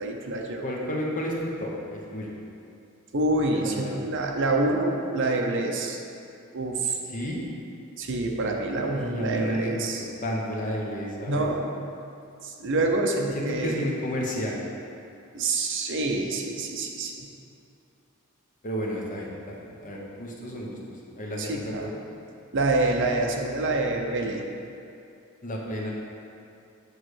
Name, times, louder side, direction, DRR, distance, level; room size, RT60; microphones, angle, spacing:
voice 1, 0.0-0.6 3.1-6.0 6.5-7.0 8.0-10.0 11.3-11.6 12.4-13.8 15.3-17.3 21.4-21.8 22.5-24.4, right 2 dB, 55° right, 1 dB, 0.7 m, -26 dB
voice 2, 0.6-2.4 3.5-4.1 7.1-7.4 9.0-11.5 13.3-14.6 18.6-22.0 25.4-25.9, equal, 35° left, -2 dB, 1.0 m, -32 dB
8.8 x 3.3 x 6.4 m, 2.6 s
head